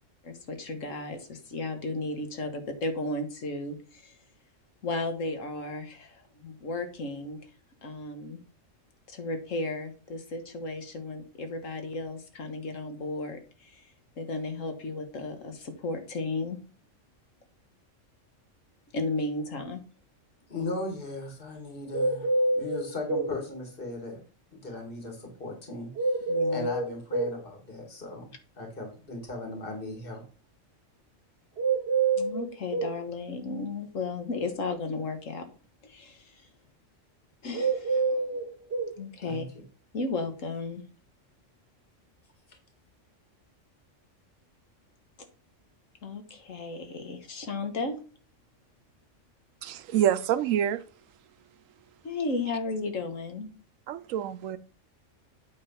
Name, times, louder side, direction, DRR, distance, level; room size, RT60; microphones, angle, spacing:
voice 1, 0.2-4.2 4.8-7.4 7.8-8.4 9.1-13.8 14.2-16.6 18.9-19.8 26.3-26.7 32.2-35.4 35.8-36.4 37.4-38.2 39.0-39.5 39.9-40.8 46.0-48.0 52.0-53.5, left 3 dB, 80° left, 1.7 m, -34 dB
voice 2, 20.5-24.2 24.5-26.2 26.5-28.3 28.6-30.2 39.2-39.4, left 2 dB, 45° left, 2.4 m, -37 dB
sound 1, 21.9-23.3 26.0-27.4 31.6-33.0 37.5-38.9, right 3 dB, 55° right, 1.5 m, -27 dB
voice 3, 49.6-50.8 53.9-54.6, right 10 dB, 85° right, 1.0 m, -27 dB
8.6 x 4.0 x 5.6 m
omnidirectional pair, 1.3 m